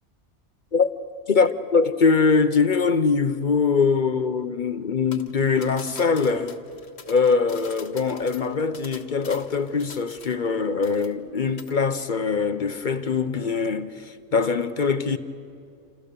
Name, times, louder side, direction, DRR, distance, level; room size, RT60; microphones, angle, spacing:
voice 1, 1.3-6.6 7.1-15.2, left 5 dB, 45° left, 0.9 m, -22 dB
sound 1, 5.1-10.6 10.8-11.3 11.6-11.8, left 4 dB, 65° left, 1.6 m, -45 dB
28.5 x 27.5 x 6.8 m
omnidirectional pair, 1.2 m